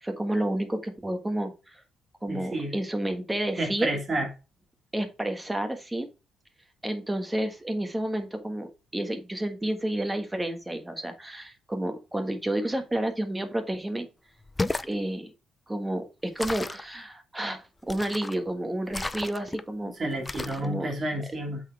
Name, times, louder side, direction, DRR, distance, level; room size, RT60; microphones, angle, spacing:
voice 1, 0.0-1.8 2.2-3.9 4.9-6.1 6.8-14.1 14.9-15.3 15.7-19.9 20.6-20.9, right 1 dB, 10° right, 1.5 m, -30 dB
voice 2, 2.3-2.7 3.6-4.3 20.0-21.6, right 1 dB, 35° right, 2.4 m, -30 dB
sound 1, 14.4-14.9 16.4-16.9 17.9-18.4 18.9-19.6 20.3-20.7, left 2 dB, 15° left, 0.4 m, -33 dB
7.9 x 4.2 x 3.5 m
cardioid pair, 90°, 0 cm